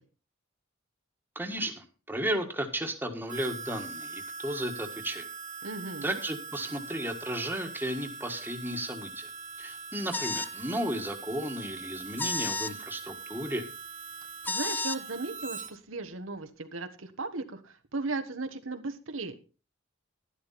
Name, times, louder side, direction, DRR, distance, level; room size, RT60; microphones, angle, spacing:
voice 1, 1.3-5.3 6.0-9.3 9.6-13.6, right 1 dB, 10° right, 4 dB, 1.6 m, -34 dB
Harmonica, 3.3-15.7, right 5 dB, 40° right, 1.8 m, -42 dB
voice 2, 5.6-6.2 14.4-19.3, right 3 dB, 85° right, 7 dB, 1.4 m, -36 dB
sound 1, 10.1-10.5 12.2-12.7 14.4-15.0, left 3 dB, 10° left, 0.5 m, -31 dB
11.5 x 11.5 x 4.2 m, 0.33 s
head